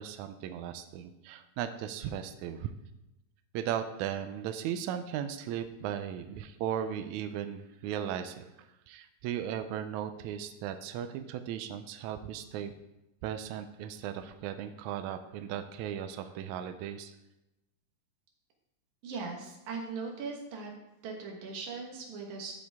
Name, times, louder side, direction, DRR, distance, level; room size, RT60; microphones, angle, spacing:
voice 1, 0.0-2.7 3.5-8.5 8.9-12.7 13.2-17.1, right 9 dB, 85° right, 9 dB, 1.6 m, -37 dB
voice 2, 19.0-20.7 21.0-22.6, right 4 dB, 65° right, 1 dB, 2.5 m, -39 dB
13.5 x 5.1 x 3.5 m, 0.91 s
omnidirectional pair, 4.0 m